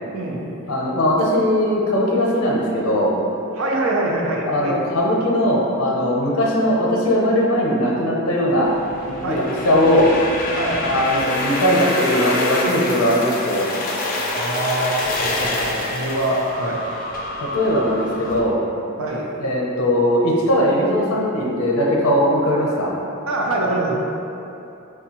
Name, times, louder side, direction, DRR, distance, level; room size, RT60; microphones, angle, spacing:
voice 1, 0.1-0.5 3.5-4.8 9.2-9.5 10.5-10.9 14.3-16.8 19.0-19.3 23.3-24.0, right 2 dB, 70° right, -2 dB, 0.5 m, -24 dB
voice 2, 0.7-3.1 4.5-8.7 9.3-10.1 10.8-13.7 17.5-18.6 19.4-22.9, equal, 90° left, -3 dB, 0.7 m, -19 dB
sound 1, 8.6-18.4, left 2 dB, 40° left, 0.4 m, -26 dB
4.8 x 2.3 x 2.8 m, 2.8 s
head